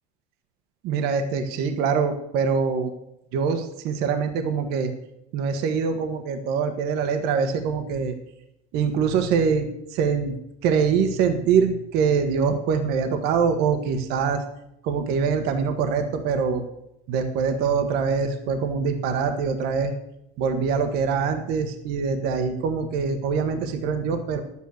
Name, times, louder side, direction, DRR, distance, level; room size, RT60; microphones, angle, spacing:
voice 1, 0.8-2.9 3.3-4.9 5.3-8.1 8.7-10.3 10.6-14.4 14.8-16.6 17.1-19.9 20.4-24.4, right 6 dB, 60° right, 6 dB, 1.4 m, -24 dB
11.0 x 8.5 x 6.5 m, 0.83 s
cardioid pair, 160°, 18 cm